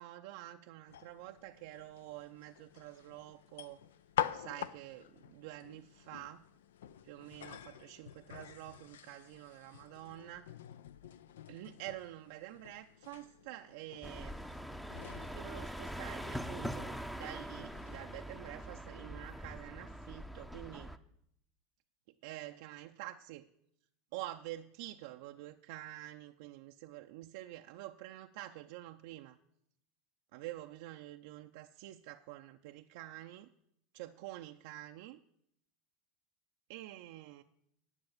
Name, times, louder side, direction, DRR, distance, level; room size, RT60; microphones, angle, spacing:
voice 1, 0.0-3.8 4.3-6.4 7.0-10.5 11.5-14.4 15.3-20.9 22.2-23.5 24.1-29.4 30.3-33.5 33.9-35.2 36.7-37.4, right 15 dB, 65° right, 4 dB, 0.4 m, -48 dB
sound 1, 0.9-18.0, left 10 dB, 80° left, 0.4 m, -46 dB
sound 2, 14.0-21.0, equal, 5° left, 0.7 m, -43 dB
10.5 x 6.7 x 7.2 m, 0.74 s
hypercardioid pair, 85°, 0 cm